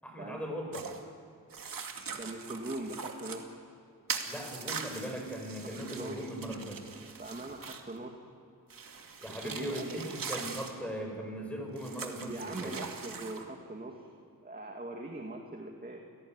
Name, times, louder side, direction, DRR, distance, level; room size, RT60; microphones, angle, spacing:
voice 1, 0.0-0.9 4.3-6.8 9.2-12.7, equal, 5° left, 1 dB, 7.7 m, -39 dB
sound 1, 0.7-1.0 1.5-3.4 4.1-8.0 8.7-10.7 11.8-13.4, right 5 dB, 70° right, 2.5 m, -41 dB
voice 2, 2.2-3.6 5.9-6.2 7.2-8.2 9.3-10.1 12.3-14.1 14.4-16.0, right 2 dB, 25° right, 2 dB, 2.4 m, -41 dB
29.5 x 18.0 x 9.7 m, 2.4 s
wide cardioid pair, 100°, 34 cm